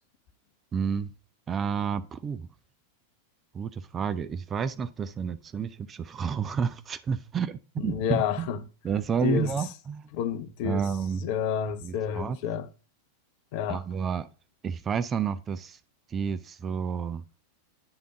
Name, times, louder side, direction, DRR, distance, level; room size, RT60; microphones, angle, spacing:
voice 1, 0.7-1.1 1.5-2.5 3.5-8.5 8.8-10.1 10.6-11.3 11.8-12.4 13.7-14.3 14.6-15.8 16.1-17.2, right 6 dB, 25° right, 0.4 m, -30 dB
voice 2, 7.8-8.6 9.2-9.6 10.1-10.9 11.2-12.7 13.5-13.8, left 8 dB, 45° left, 0.5 m, -29 dB
8.8 x 3.5 x 3.7 m
figure-of-eight pair, 90°, 0 cm